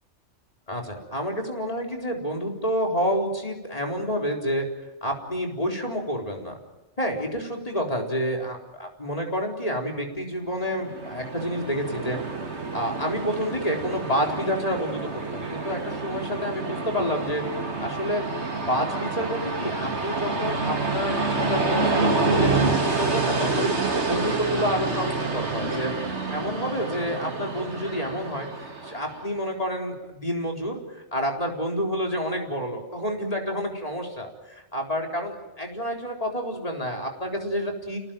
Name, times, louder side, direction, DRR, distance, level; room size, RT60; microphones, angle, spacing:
voice 1, 0.7-4.6 5.0-6.5 7.0-12.2 12.7-17.4 17.8-18.2 18.7-23.7 24.1-25.9 26.3-28.5 28.8-38.0, equal, 30° left, 1 dB, 4.3 m, -29 dB
Train, 10.6-29.3, right 3 dB, 70° right, 3.1 m, -28 dB
30.0 x 18.5 x 9.2 m, 1.1 s
omnidirectional pair, 1.2 m